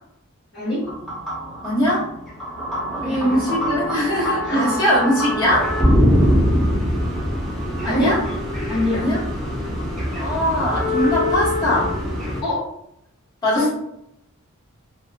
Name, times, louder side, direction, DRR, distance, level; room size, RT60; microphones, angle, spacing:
voice 1, 0.5-0.9 3.0-3.5 4.2-4.8 7.8-8.2 8.7-9.1 12.4-12.7 13.5-13.7, left 1 dB, 50° left, -10 dB, 1.4 m, -24 dB
sound 1, 0.8-12.4, equal, ahead, 0.6 m, -23 dB
voice 2, 1.6-2.0 3.0-5.7 7.8-8.2 8.9-9.2 10.1-11.9 13.4-13.7, equal, 20° left, -13 dB, 1.5 m, -21 dB
2.8 x 2.3 x 2.6 m, 0.78 s
head